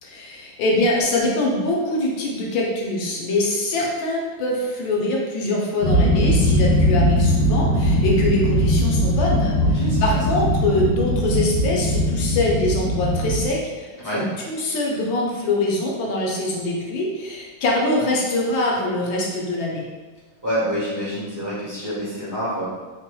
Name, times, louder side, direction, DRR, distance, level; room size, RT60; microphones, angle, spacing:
voice 1, 0.0-19.8, left 1 dB, 70° left, -2 dB, 1.4 m, -23 dB
sound 1, 5.8-13.5, equal, 55° left, 1.6 m, -20 dB
voice 2, 9.6-10.2 14.0-14.2 20.4-22.6, equal, 15° right, -10 dB, 0.8 m, -27 dB
4.3 x 2.9 x 2.3 m, 1.4 s
omnidirectional pair, 2.3 m